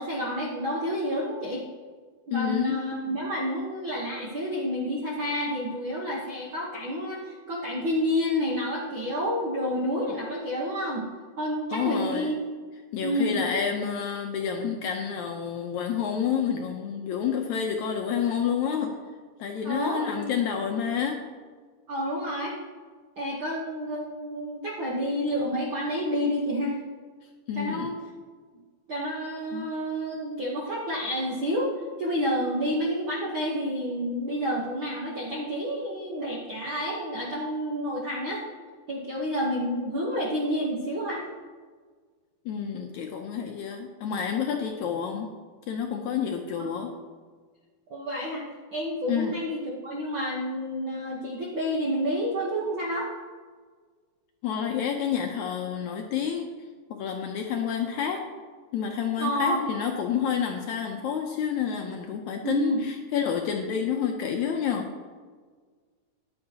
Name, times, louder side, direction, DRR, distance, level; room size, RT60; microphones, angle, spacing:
voice 1, 0.0-1.6 2.3-11.1 11.4-12.4 13.0-13.4 19.6-20.3 21.9-22.5 23.2-26.8 27.5-27.9 28.9-31.7 32.0-38.4 38.9-41.2 46.6-46.7 47.9-48.4 48.7-53.1 59.2-59.6 62.4-62.8, equal, 65° right, -3 dB, 1.2 m, -29 dB
voice 2, 2.3-2.8 11.7-12.3 12.9-18.9 19.4-21.2 27.5-27.9 29.5-29.7 42.5-45.3 45.7-46.9 49.1-49.4 54.4-56.5 56.9-58.2 58.7-64.9, left 7 dB, 75° left, 2 dB, 1.8 m, -29 dB
14.0 x 10.0 x 2.9 m, 1.5 s
omnidirectional pair, 4.0 m